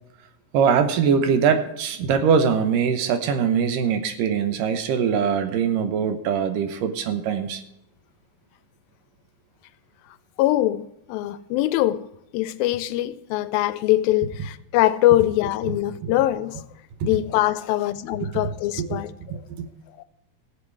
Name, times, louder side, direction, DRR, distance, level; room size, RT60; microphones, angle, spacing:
voice 1, 0.5-7.6 16.0-16.1 17.0-17.1 18.2-18.3 18.8-19.0 19.3-19.7, right 7 dB, 75° right, 2.4 m, -22 dB
voice 2, 10.4-12.0 12.3-16.6 17.0-19.1 20.0-20.1, left 15 dB, 85° left, 2.4 m, -22 dB
15.5 x 8.4 x 4.7 m
omnidirectional pair, 4.3 m